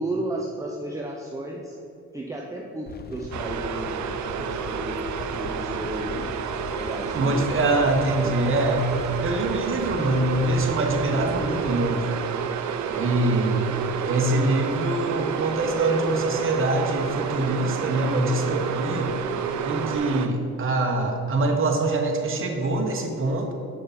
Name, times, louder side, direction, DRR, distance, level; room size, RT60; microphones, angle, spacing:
voice 1, 0.0-1.8 2.1-5.0 5.4-6.3 6.8-7.5 8.2-8.6 13.1-13.4, right 1 dB, 10° right, 0 dB, 0.8 m, -33 dB
sound 1, 2.9-11.9, left 4 dB, 35° left, 0.5 m, -39 dB
sound 2, 3.3-20.3, right 7 dB, 70° right, 0.6 m, -30 dB
sound 3, 5.8-20.0, right 7 dB, 10° left, 1.5 m, -44 dB
voice 2, 7.1-8.8 9.2-12.1 12.9-19.1 19.6-23.5, right 2 dB, 45° right, 2 dB, 1.5 m, -24 dB
8.5 x 6.4 x 4.4 m, 2.8 s
cardioid pair, 90°, 30 cm